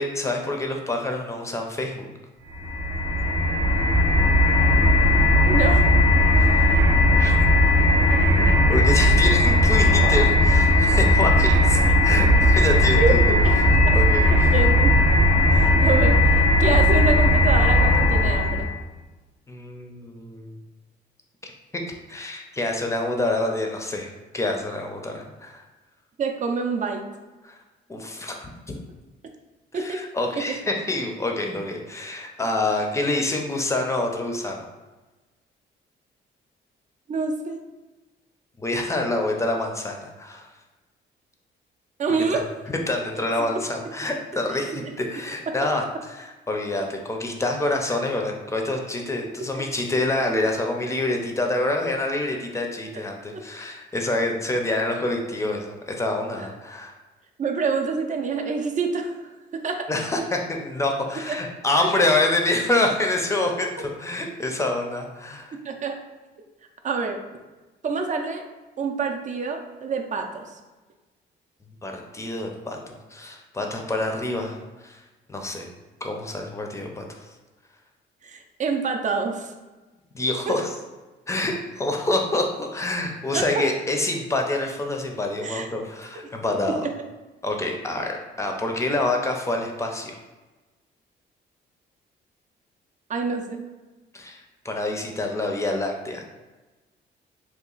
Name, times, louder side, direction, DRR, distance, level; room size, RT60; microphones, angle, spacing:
voice 1, 0.0-2.1 6.4-6.8 7.2-7.3 8.4-13.2 13.6-14.6 19.5-20.6 21.4-21.5 22.1-25.6 27.4-27.6 27.9-28.8 29.7-34.6 38.6-40.5 42.1-42.2 42.7-56.9 59.9-65.6 71.8-74.6 74.8-75.0 75.3-75.7 76.0-77.3 80.1-80.7 81.3-86.8 87.4-90.1 94.1-96.2, left 2 dB, 15° left, 2 dB, 0.5 m, -27 dB
sound 1, 2.5-18.7, left 1 dB, 80° right, 0.8 m, -17 dB
voice 2, 5.4-6.0 11.9-12.0 13.0-13.5 13.9-14.0 14.3-15.0 15.5-16.2 16.6-18.7 26.2-27.0 29.7-30.0 30.4-30.6 37.1-37.6 42.0-42.5 43.4-43.6 44.7-44.9 45.5-45.6 49.5-49.6 57.4-59.9 65.5-66.0 66.8-67.2 67.8-68.4 68.8-70.6 78.2-79.5 80.5-80.6 83.3-83.6 85.4-85.7 86.7-86.9 93.1-93.6, right 4 dB, 40° right, 4 dB, 0.5 m, -27 dB
2.9 x 2.3 x 3.8 m, 1.2 s
cardioid pair, 90°, 20 cm